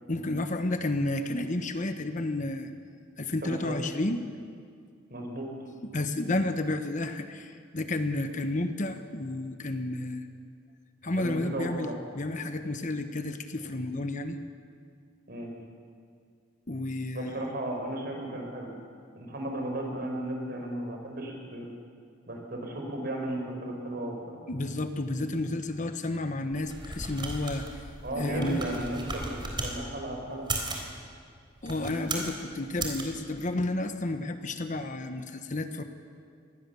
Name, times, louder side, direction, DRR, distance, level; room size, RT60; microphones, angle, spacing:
voice 1, 0.1-2.7 3.2-4.3 5.9-10.2 11.0-14.4 16.7-17.5 24.5-27.7 28.1-28.7 31.6-35.8, left 2 dB, 40° left, 8 dB, 1.2 m, -31 dB
voice 2, 3.4-3.8 5.1-5.5 11.2-12.0 15.3-15.5 17.1-18.7 19.1-21.7 22.3-24.4 28.0-30.5, right 1 dB, 50° right, 2 dB, 5.0 m, -35 dB
sound 1, 26.5-29.7 30.3-30.9 31.6-32.4 32.8-33.0, right 2 dB, 25° right, 3.6 m, -36 dB
25.0 x 19.0 x 7.0 m, 2.2 s
head